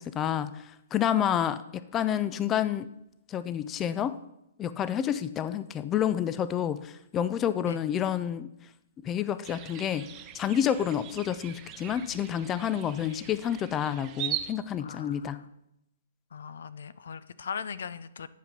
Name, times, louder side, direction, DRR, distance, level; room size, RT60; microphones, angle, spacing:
voice 1, 0.0-2.9 3.3-4.2 4.6-8.5 9.0-10.1 10.3-15.4, left 9 dB, 20° left, 15 dB, 0.4 m, -29 dB
sound 1, 9.4-14.5, right 11 dB, 30° right, 0.8 m, -40 dB
voice 2, 12.9-13.3 14.8-15.5 16.3-18.3, left 6 dB, 70° left, 16 dB, 0.5 m, -40 dB
10.0 x 5.2 x 6.0 m, 0.82 s
hypercardioid pair, 130°, 0 cm